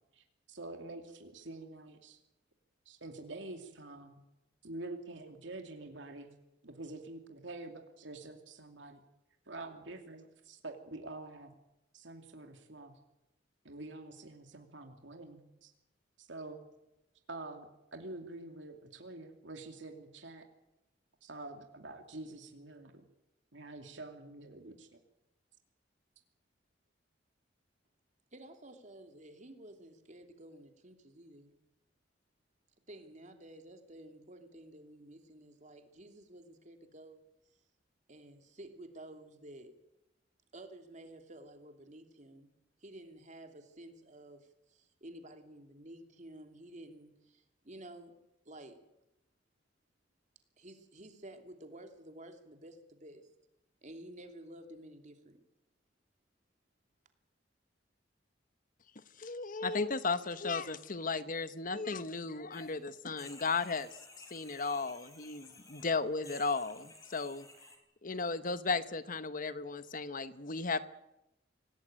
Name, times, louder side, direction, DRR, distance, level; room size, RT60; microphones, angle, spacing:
voice 1, 0.1-2.2 2.9-4.2 4.6-6.3 6.6-9.0 9.5-11.5 11.9-12.9 13.6-15.7 16.2-16.7 17.3-20.4 21.2-23.1 23.5-25.0, right 2 dB, 75° right, 4 dB, 2.7 m, -47 dB
voice 2, 28.3-31.6 32.9-37.2 38.1-39.8 40.5-42.5 42.8-48.1 48.4-48.8 50.6-53.3 53.8-55.4, right 1 dB, 40° right, 5 dB, 3.0 m, -52 dB
voice 3, 59.2-63.9 64.3-67.5 68.0-70.8, left 4 dB, 45° left, 13 dB, 1.2 m, -35 dB
sound 1, 62.5-62.7 63.1-65.9 66.2-67.8, left 2 dB, 20° left, 4.3 m, -54 dB
26.0 x 18.0 x 8.9 m, 0.91 s
head